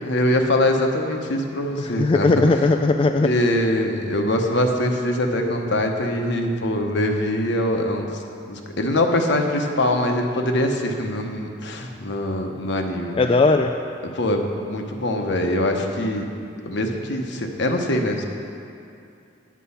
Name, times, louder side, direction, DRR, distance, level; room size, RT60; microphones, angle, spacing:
voice 1, 0.0-2.3 3.2-8.2 8.5-13.1 14.1-16.3 16.7-18.2, left 1 dB, 65° left, 3 dB, 1.0 m, -23 dB
voice 2, 1.8-3.3 13.1-13.7, left 3 dB, 30° left, 4 dB, 0.3 m, -18 dB
9.2 x 8.5 x 5.6 m, 2.5 s
head